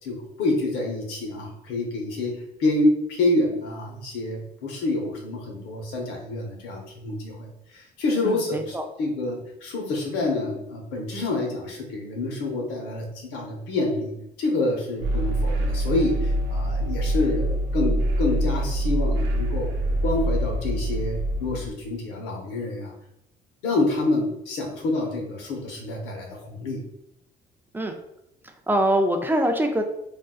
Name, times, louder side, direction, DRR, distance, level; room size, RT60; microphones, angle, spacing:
voice 1, 0.0-19.7 20.0-22.9 23.6-26.8, left 2 dB, 90° left, 0 dB, 0.9 m, -27 dB
voice 2, 8.2-8.8 27.7-27.9 28.7-29.8, right 1 dB, 10° right, 4 dB, 0.3 m, -23 dB
sound 1, 15.0-21.7, right 1 dB, 80° right, 0.7 m, -25 dB
3.6 x 2.5 x 2.3 m, 0.81 s
cardioid pair, 110°, 17 cm